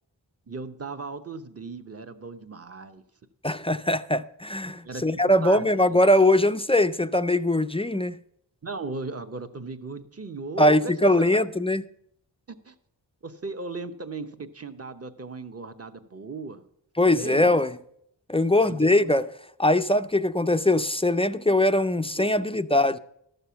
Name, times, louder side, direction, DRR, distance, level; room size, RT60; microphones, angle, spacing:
voice 1, 0.5-3.0 4.8-5.0 5.4-6.0 8.6-11.4 12.5-12.7 13.2-16.6 17.1-17.5 18.6-19.1 22.1-22.4 22.7-23.0, right 3 dB, 30° right, 0.9 m, -37 dB
voice 2, 3.4-8.2 10.6-11.9 17.0-17.8 18.3-19.3 19.6-23.0, left 1 dB, 15° left, 0.3 m, -21 dB
13.0 x 6.8 x 5.7 m
wide cardioid pair, 75°, 45 cm